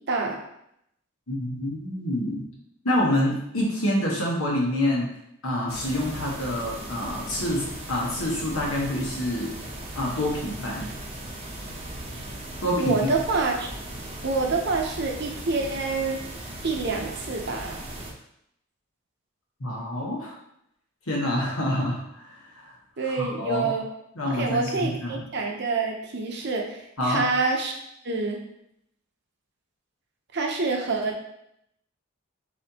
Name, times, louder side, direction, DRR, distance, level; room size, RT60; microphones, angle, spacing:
voice 1, 0.1-0.4 12.8-13.7 14.2-16.2 16.6-17.8 23.0-23.8 24.3-26.8 27.0-27.7 28.0-28.4 30.3-31.3, right 3 dB, 55° right, 1 dB, 0.8 m, -27 dB
voice 2, 1.3-2.4 2.8-5.1 5.4-9.5 9.9-10.9 12.6-13.1 19.6-20.3 21.1-22.7 23.0-23.7 24.1-25.2 27.0-27.2, left 1 dB, 85° left, -2 dB, 1.4 m, -27 dB
sound 1, 5.7-18.1, right 1 dB, 30° right, 0.7 m, -38 dB
4.3 x 4.2 x 2.9 m, 0.76 s
head